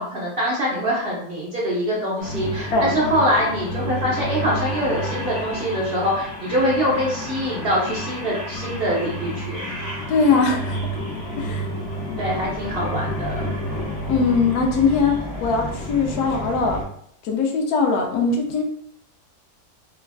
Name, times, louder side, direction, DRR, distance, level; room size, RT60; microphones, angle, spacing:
voice 1, 0.0-9.6 12.2-13.5, equal, 50° right, -5 dB, 0.8 m, -24 dB
sound 1, 2.2-16.8, equal, 55° left, 1.0 m, -30 dB
voice 2, 10.1-10.8 11.4-11.7 14.1-16.8 17.2-18.6, left 4 dB, 80° left, 1 dB, 1.1 m, -21 dB
3.3 x 2.3 x 2.2 m, 0.67 s
omnidirectional pair, 1.6 m